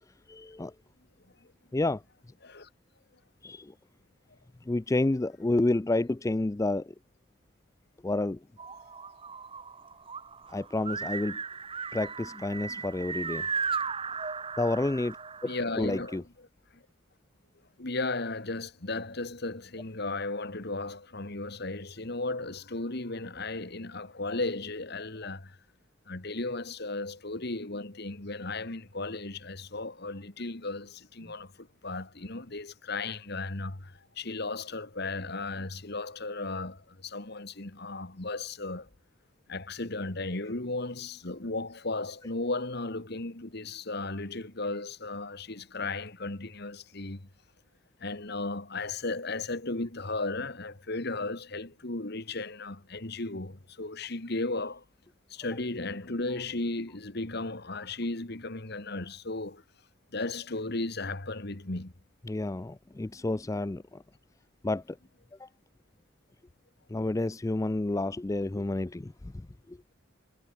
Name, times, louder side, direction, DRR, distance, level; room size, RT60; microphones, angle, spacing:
voice 1, 0.3-0.7 1.7-2.0 3.4-3.7 4.7-6.9 8.0-8.4 10.5-11.4 11.9-13.5 14.6-15.2 15.8-16.2 62.3-64.0 64.6-65.0 65.4-65.5 66.9-69.3 69.7-69.8, left 2 dB, 15° left, 0.3 m, -29 dB
sound 1, 8.6-16.2, right 5 dB, 25° right, 1.6 m, -36 dB
voice 2, 15.4-16.2 16.7-16.8 17.8-25.6 26.1-38.9 39.5-47.3 48.0-54.8 55.3-59.6 60.1-61.9, left 2 dB, 50° left, 1.8 m, -35 dB
head